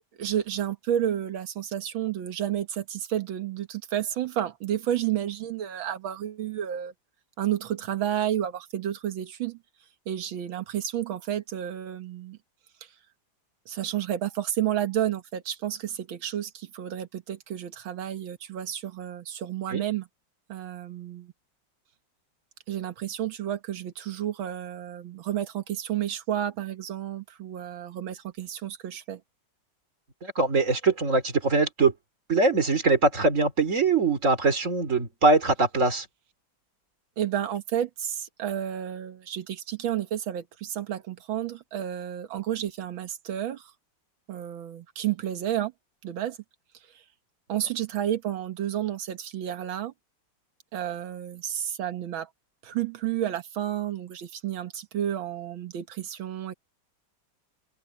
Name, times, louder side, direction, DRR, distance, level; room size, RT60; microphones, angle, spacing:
voice 1, 0.2-6.9 7.4-9.6 10.1-12.4 13.7-20.1 20.5-21.3 22.7-29.2 37.2-43.7 44.3-45.7 46.0-46.4 46.9-47.0 47.5-49.9 50.7-52.3 52.6-56.5, right 11 dB, 90° right, 2.0 m, -31 dB
voice 2, 30.2-31.9 32.3-36.1, right 3 dB, 40° right, 3.3 m, -22 dB
open air
omnidirectional pair, 2.1 m